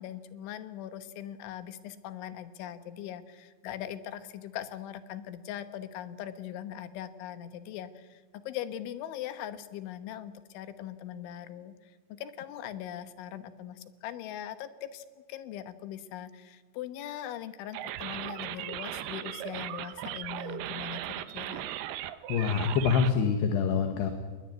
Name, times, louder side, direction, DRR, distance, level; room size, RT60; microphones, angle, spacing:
voice 1, 0.0-11.7 12.1-21.0 21.3-21.7, left 11 dB, 85° left, 11 dB, 3.7 m, -40 dB
sound 1, 17.7-23.1, right 13 dB, 75° right, 2.6 m, -37 dB
voice 2, 22.3-24.1, left 6 dB, 70° left, 6 dB, 3.4 m, -26 dB
21.0 x 20.5 x 9.4 m, 1.4 s
omnidirectional pair, 5.3 m